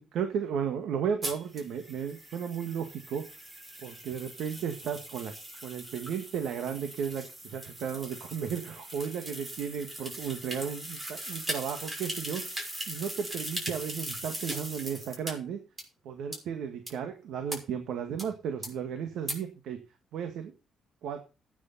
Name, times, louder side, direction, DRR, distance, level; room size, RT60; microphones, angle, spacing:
voice 1, 0.0-3.2 3.8-5.3 5.6-12.6 12.9-15.6 16.0-19.8 20.1-20.5 21.0-21.2, right 7 dB, 80° right, 6 dB, 1.9 m, -34 dB
sound 1, 1.2-15.3 15.8-15.9 16.3-16.4 16.9-17.0 17.5-17.6 18.2-18.3 18.6-18.7 19.3-19.4, right 1 dB, 25° right, 6.1 m, -40 dB
15.5 x 9.7 x 4.2 m, 0.32 s
cardioid pair, 90°, 0 cm